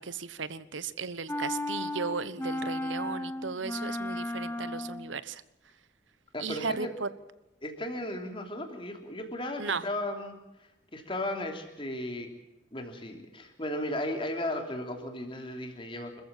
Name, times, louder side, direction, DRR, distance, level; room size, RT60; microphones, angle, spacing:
voice 1, 0.0-5.4 6.4-7.1 9.6-9.8, right 5 dB, 85° right, 15 dB, 1.1 m, -35 dB
sound 1, 1.3-5.2, left 1 dB, 10° left, 0.7 m, -34 dB
voice 2, 6.3-6.9 7.6-12.3 12.7-16.2, left 1 dB, 30° left, 4 dB, 3.2 m, -35 dB
26.5 x 15.0 x 7.6 m, 0.97 s
head